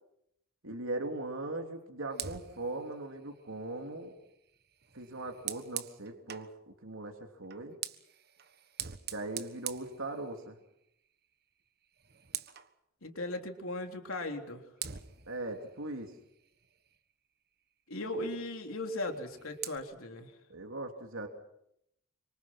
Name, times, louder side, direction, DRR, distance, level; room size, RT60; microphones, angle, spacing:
voice 1, 0.6-4.1 4.9-7.8 9.1-10.6 15.3-16.1 18.1-18.3 20.5-21.3, right 2 dB, 80° right, 3 dB, 3.1 m, -39 dB
Fire, 2.1-6.6 7.4-10.7 11.1-11.3 11.7-12.7 14.1-14.3 14.8-17.1 19.0-19.8, right 10 dB, 50° right, 1.4 m, -44 dB
voice 2, 13.0-14.6 17.9-20.3, left 1 dB, 85° left, 4 dB, 3.5 m, -37 dB
28.0 x 25.5 x 6.0 m, 0.78 s
head